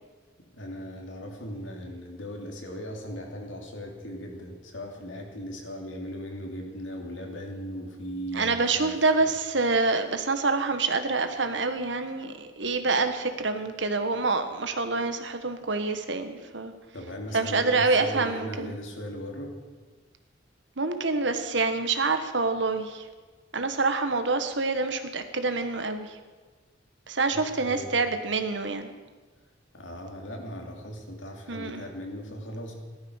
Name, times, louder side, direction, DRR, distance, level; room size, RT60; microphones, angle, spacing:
voice 1, 0.5-9.3 16.9-19.6 27.3-27.9 29.7-32.7, equal, 80° left, 1 dB, 3.1 m, -38 dB
voice 2, 8.3-16.7 17.3-18.7 20.8-23.1 23.5-26.2 27.1-28.9 31.5-31.8, right 3 dB, 65° right, 8 dB, 1.5 m, -26 dB
15.5 x 13.0 x 6.5 m, 1.4 s
head